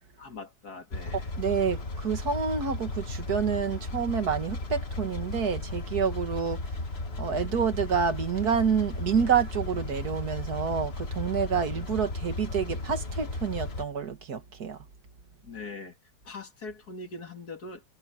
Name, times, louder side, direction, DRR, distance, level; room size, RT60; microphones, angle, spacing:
voice 1, 0.2-1.3 15.4-16.0 16.2-17.8, left 3 dB, 80° left, 3.1 m, -41 dB
sound 1, 0.9-13.8, left 2 dB, 40° left, 1.8 m, -35 dB
voice 2, 1.1-6.7 7.2-14.8, right 6 dB, 75° right, 2.3 m, -28 dB
omnidirectional pair, 1.7 m